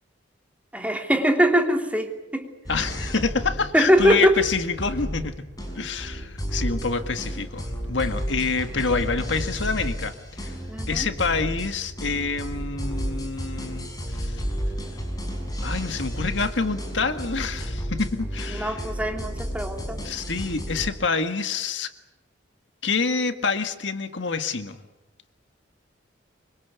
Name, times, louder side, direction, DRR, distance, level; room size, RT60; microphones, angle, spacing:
voice 1, 0.7-2.5 3.7-4.4 10.7-11.1 18.5-20.0, equal, 10° right, 3 dB, 3.1 m, -22 dB
voice 2, 2.7-5.3 5.8-10.5 10.9-14.4 15.6-18.8 20.0-21.9 22.8-24.8, left 4 dB, 85° left, 8 dB, 1.7 m, -27 dB
sound 1, 2.7-20.9, equal, 20° left, 6.2 m, -32 dB
25.5 x 25.0 x 8.3 m, 0.96 s
head